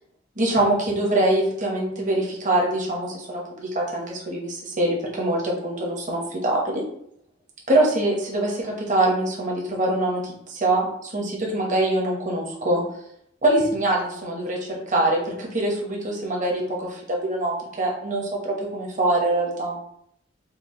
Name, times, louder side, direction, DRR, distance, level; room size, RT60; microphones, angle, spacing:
voice 1, 0.4-6.8 7.7-12.8 13.4-19.8, right 1 dB, 40° right, -2 dB, 1.1 m, -24 dB
4.6 x 2.1 x 3.8 m, 0.70 s
head